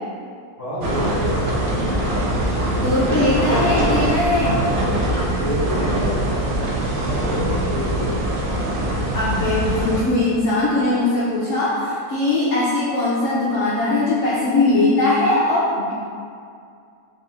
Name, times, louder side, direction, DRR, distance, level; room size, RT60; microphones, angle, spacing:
voice 1, 0.6-1.7 5.4-6.6 7.0-8.3 8.7-8.9, equal, 45° right, -12 dB, 1.7 m, -28 dB
sound 1, 0.8-10.0, right 1 dB, 90° right, 0.4 m, -22 dB
voice 2, 2.7-4.6 9.1-16.1, left 2 dB, 60° left, -8 dB, 0.9 m, -20 dB
3.6 x 3.1 x 3.3 m, 2.3 s
omnidirectional pair, 1.6 m